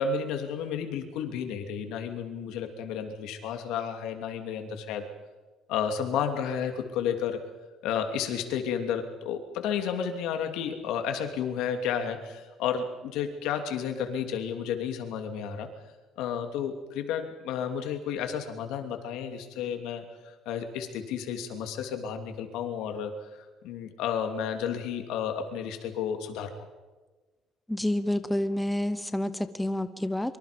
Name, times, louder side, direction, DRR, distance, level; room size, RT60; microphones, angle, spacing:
voice 1, 0.0-5.1 5.7-7.4 7.8-15.7 16.2-26.5, left 7 dB, 80° left, 6 dB, 2.8 m, -32 dB
voice 2, 27.7-30.4, left 1 dB, 5° left, 11 dB, 0.9 m, -29 dB
25.0 x 24.5 x 5.3 m, 1.3 s
cardioid pair, 145°, 0 cm